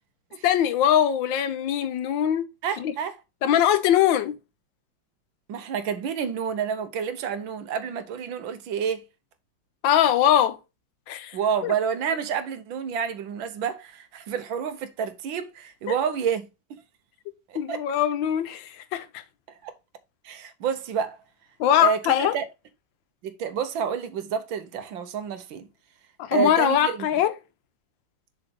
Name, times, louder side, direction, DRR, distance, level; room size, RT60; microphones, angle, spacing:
voice 1, 0.4-2.5 2.8-2.9 3.4-4.4 9.8-10.6 11.1-11.4 11.6-11.7 17.5-19.2 21.6-22.4 26.2-27.3, left 10 dB, 80° left, 1.4 m, -22 dB
voice 2, 2.6-3.2 5.5-9.0 11.3-16.4 16.7-16.8 17.5-17.8 19.5-19.7 20.3-21.2 21.8-22.0 22.3-22.5 23.2-25.7 26.3-27.0, right 7 dB, 85° right, 1.6 m, -29 dB
7.0 x 4.0 x 5.3 m
omnidirectional pair, 2.1 m